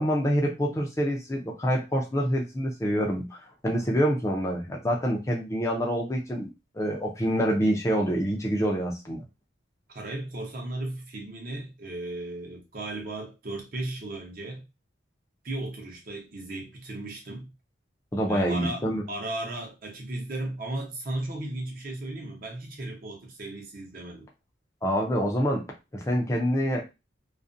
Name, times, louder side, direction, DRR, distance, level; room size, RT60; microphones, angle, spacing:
voice 1, 0.0-3.4 3.6-6.5 6.7-9.2 18.1-19.0 24.8-25.7 25.9-26.8, equal, 15° left, 0.4 m, -26 dB
voice 2, 9.9-14.6 15.4-17.5 18.3-24.3, right 2 dB, 45° right, 0.7 m, -36 dB
2.4 x 2.1 x 2.5 m
head